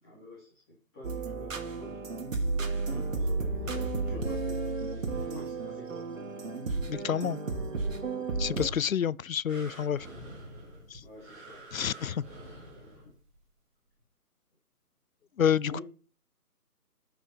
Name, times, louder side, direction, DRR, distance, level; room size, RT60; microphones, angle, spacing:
voice 1, 0.0-2.0 2.8-4.6 4.9-6.0 11.0-11.6 11.9-12.2 12.8-13.1 15.6-15.8, left 1 dB, 15° left, 3.5 m, -47 dB
sound 1, 1.0-8.7, right 3 dB, 55° right, 2.2 m, -33 dB
voice 2, 6.9-7.4 8.4-10.1 10.9-11.0 11.7-12.2 15.4-15.8, left 8 dB, 60° left, 0.5 m, -28 dB
sound 2, 9.5-13.4 14.0-14.1, right 1 dB, 10° right, 2.1 m, -48 dB
13.0 x 5.8 x 5.5 m
hypercardioid pair, 170°, 47 cm